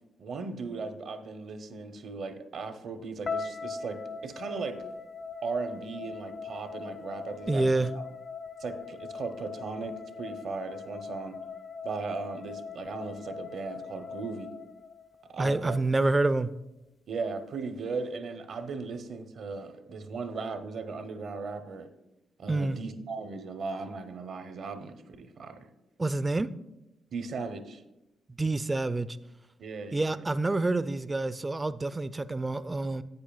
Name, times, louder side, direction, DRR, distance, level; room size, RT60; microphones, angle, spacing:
voice 1, 0.2-4.8 5.4-8.1 8.6-11.4 11.8-14.5 15.3-15.8 17.1-21.9 22.4-25.7 27.1-27.8 29.6-30.2, right 4 dB, 65° right, 0.7 m, -37 dB
sound 1, 3.3-15.4, left 5 dB, 40° left, 0.5 m, -41 dB
voice 2, 7.5-7.9 15.4-16.5 22.5-22.8 26.0-26.5 28.4-29.2 29.9-33.0, right 2 dB, 25° right, 0.4 m, -27 dB
10.5 x 8.4 x 2.3 m
hypercardioid pair, 50°, 0 cm